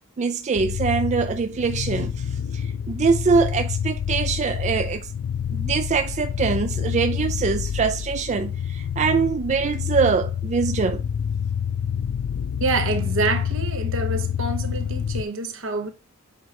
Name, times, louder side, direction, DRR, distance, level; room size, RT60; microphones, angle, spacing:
voice 1, 0.2-5.1 5.5-11.0, right 5 dB, 35° right, 0.3 m, -23 dB
sound 1, 0.6-15.2, left 8 dB, 65° left, 0.3 m, -27 dB
voice 2, 12.6-15.9, right 3 dB, 65° right, 1.1 m, -26 dB
7.7 x 3.1 x 4.2 m
head